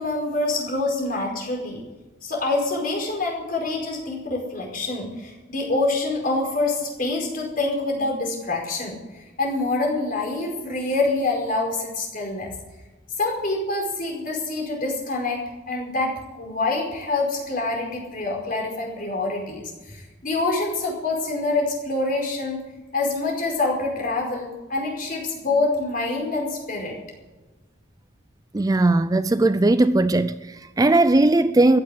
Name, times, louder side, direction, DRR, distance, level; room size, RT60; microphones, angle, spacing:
voice 1, 0.0-1.8 2.2-12.5 13.2-22.6 22.9-26.9, left 2 dB, 45° left, 4.9 m, -26 dB
voice 2, 28.5-31.8, right 2 dB, 20° right, 0.4 m, -18 dB
15.0 x 9.9 x 8.3 m
head